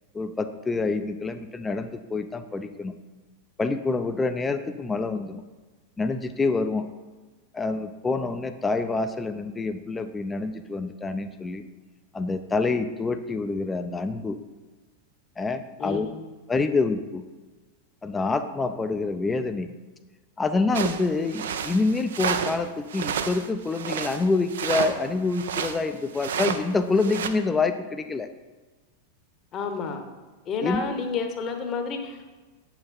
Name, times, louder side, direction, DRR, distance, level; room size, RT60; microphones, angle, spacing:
voice 1, 0.1-2.9 3.6-5.4 6.0-6.9 7.5-11.6 12.1-14.4 15.4-16.1 16.5-17.3 18.0-19.7 20.4-28.3 30.6-30.8, left 3 dB, 15° left, 9 dB, 0.5 m, -27 dB
voice 2, 15.8-16.3 29.5-30.0 30.5-32.2, left 5 dB, 30° left, 5 dB, 1.1 m, -30 dB
sound 1, 20.7-22.6 22.9-25.8 26.1-26.6 27.0-27.3, right 7 dB, 60° right, 0.6 m, -30 dB
8.5 x 6.0 x 4.3 m, 1.3 s
figure-of-eight pair, 90°, 0 cm